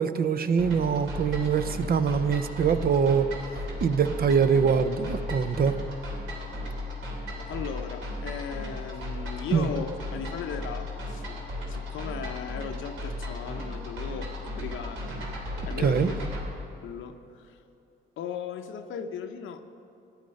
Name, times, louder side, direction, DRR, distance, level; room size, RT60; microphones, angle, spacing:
voice 1, 0.0-3.3 3.8-5.8 9.5-9.7 15.8-16.1, right 6 dB, 50° right, 11 dB, 0.7 m, -23 dB
sound 1, 0.6-16.4, left 1 dB, 80° right, 3.4 m, -35 dB
voice 2, 7.5-11.4 11.7-15.3 15.7-16.3 16.8-17.6 18.2-19.6, left 7 dB, 80° left, 7 dB, 0.8 m, -37 dB
14.0 x 10.5 x 5.4 m, 2.6 s
cardioid pair, 90°, 20 cm